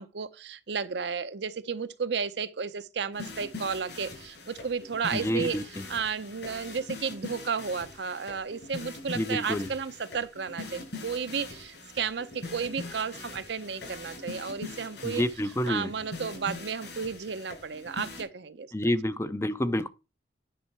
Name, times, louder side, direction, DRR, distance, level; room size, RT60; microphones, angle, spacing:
voice 1, 0.0-5.6 5.9-15.2 15.7-18.7, right 6 dB, 70° right, 0.7 m, -33 dB
sound 1, 3.1-18.2, left 2 dB, 70° left, 6.3 m, -42 dB
voice 2, 5.1-5.8 9.1-9.7 15.0-15.9 18.7-19.9, left 1 dB, 15° left, 0.5 m, -28 dB
10.0 x 5.6 x 4.4 m
head